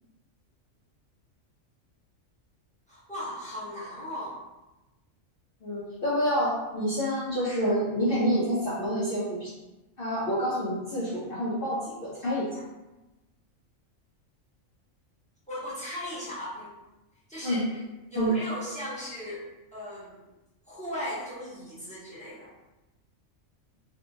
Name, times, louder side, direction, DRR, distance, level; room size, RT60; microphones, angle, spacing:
voice 1, 2.9-4.4 15.5-16.7 17.3-17.8 18.1-20.1 20.7-22.5, equal, 5° left, -10 dB, 0.7 m, -37 dB
voice 2, 5.6-9.5 10.0-12.5 17.4-17.6 18.2-18.4, equal, 55° left, -9 dB, 0.8 m, -28 dB
2.7 x 2.6 x 2.5 m, 1.0 s
omnidirectional pair, 1.4 m